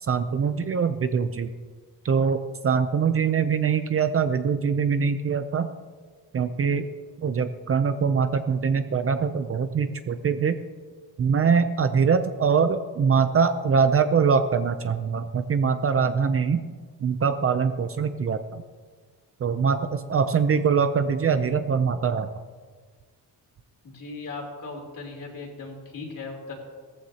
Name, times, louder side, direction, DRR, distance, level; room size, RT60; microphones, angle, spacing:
voice 1, 0.0-1.5 2.0-2.4 2.6-5.7 6.3-6.9 7.2-10.6 11.2-16.6 17.0-18.6 19.4-22.3, right 6 dB, 35° right, 9 dB, 0.5 m, -23 dB
voice 2, 23.8-26.5, left 3 dB, 50° left, 0 dB, 3.3 m, -38 dB
17.5 x 14.5 x 2.8 m, 1.5 s
wide cardioid pair, 160°, 39 cm